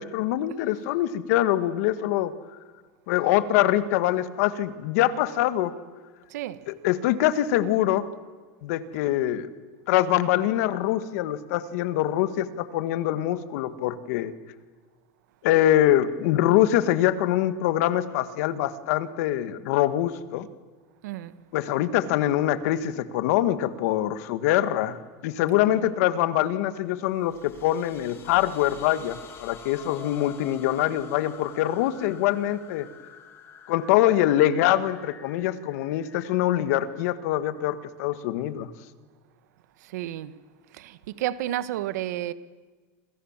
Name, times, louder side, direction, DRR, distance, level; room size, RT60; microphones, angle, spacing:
voice 1, 0.0-2.3 3.1-5.7 6.7-8.1 8.6-9.5 9.9-14.3 15.4-20.5 21.5-25.0 25.2-32.9 33.7-38.7, left 13 dB, 65° left, 1.8 m, -24 dB
voice 2, 6.3-6.7 21.0-21.4 25.5-25.9 39.8-40.4 40.7-42.3, right 13 dB, 85° right, 1.5 m, -32 dB
sound 1, 27.1-37.7, left 7 dB, 30° left, 2.4 m, -48 dB
29.0 x 27.0 x 7.5 m
supercardioid pair, 155°, 9 cm